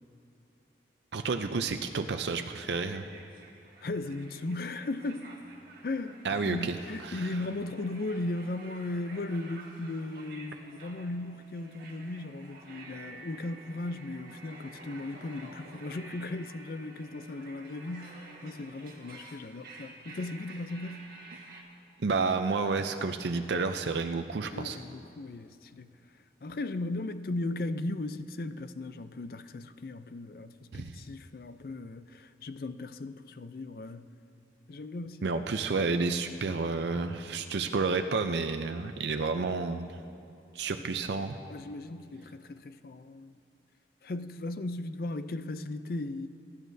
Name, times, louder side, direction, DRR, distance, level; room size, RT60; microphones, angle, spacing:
voice 1, 1.1-3.0 6.2-6.8 7.0-7.3 22.0-24.8 30.7-31.0 35.2-39.9 40.5-41.4, right 4 dB, 80° right, 0.5 m, -30 dB
sound 1, 2.9-21.6, right 3 dB, 55° right, 1.6 m, -51 dB
voice 2, 3.8-5.3 5.8-21.1 24.5-25.9 26.4-34.1 34.7-35.3 41.5-43.4 44.0-46.3, left 2 dB, 55° left, 0.5 m, -37 dB
22.5 x 11.0 x 2.7 m
head